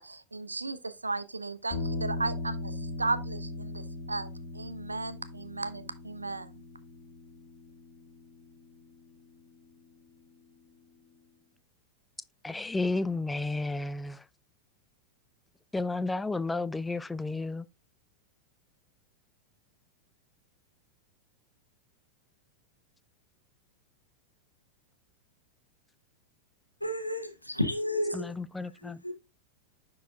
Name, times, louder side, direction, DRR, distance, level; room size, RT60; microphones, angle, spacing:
voice 1, 0.0-4.3 4.5-6.5, right 3 dB, 80° right, 0.6 m, -35 dB
sound 1, 1.7-10.0, left 2 dB, 40° left, 1.8 m, -39 dB
voice 2, 12.4-14.2 15.7-17.6 28.1-29.0, left 3 dB, 10° left, 0.4 m, -32 dB
voice 3, 26.8-28.3 28.8-29.1, left 1 dB, 90° left, 1.1 m, -32 dB
10.0 x 4.7 x 2.3 m
figure-of-eight pair, 90°, 0 cm